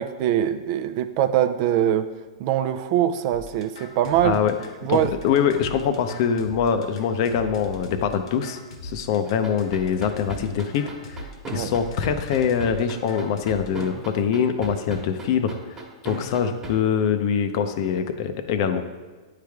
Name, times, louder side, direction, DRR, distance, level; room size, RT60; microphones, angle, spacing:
voice 1, 0.0-2.1 2.4-4.4 4.8-5.1 11.5-11.7, right 11 dB, 50° right, 9 dB, 0.4 m, -23 dB
sound 1, 3.3-13.8, left 1 dB, 70° left, 1.0 m, -40 dB
voice 2, 4.9-18.8, left 7 dB, 55° left, 8 dB, 0.6 m, -24 dB
sound 2, 9.2-16.7, right 3 dB, 20° right, 1.2 m, -36 dB
9.1 x 3.3 x 3.4 m, 1.3 s
hypercardioid pair, 125°, 3 cm